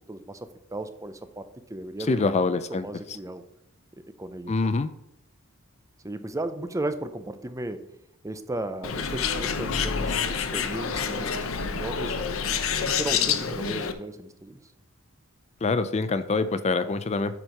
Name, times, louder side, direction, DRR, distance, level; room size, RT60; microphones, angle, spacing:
voice 1, 0.1-2.3 2.7-3.4 4.2-4.7 6.0-7.9 8.2-12.5 12.8-14.6, right 1 dB, 15° right, 10 dB, 0.6 m, -35 dB
voice 2, 2.1-2.9 4.5-4.9 15.6-17.4, left 3 dB, 30° left, 12 dB, 0.4 m, -25 dB
Bird, 8.8-13.9, left 6 dB, 70° left, 0.7 m, -27 dB
7.9 x 4.5 x 5.8 m, 0.78 s
head